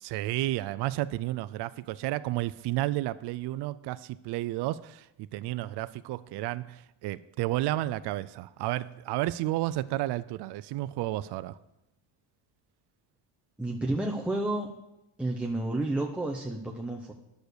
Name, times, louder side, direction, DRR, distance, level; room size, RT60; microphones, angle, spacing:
voice 1, 0.0-11.6, right 16 dB, 60° right, 14 dB, 0.5 m, -32 dB
voice 2, 13.6-14.8 15.2-17.1, right 2 dB, 5° right, -1 dB, 0.7 m, -31 dB
10.5 x 6.5 x 6.7 m, 0.90 s
cardioid pair, 140°, 47 cm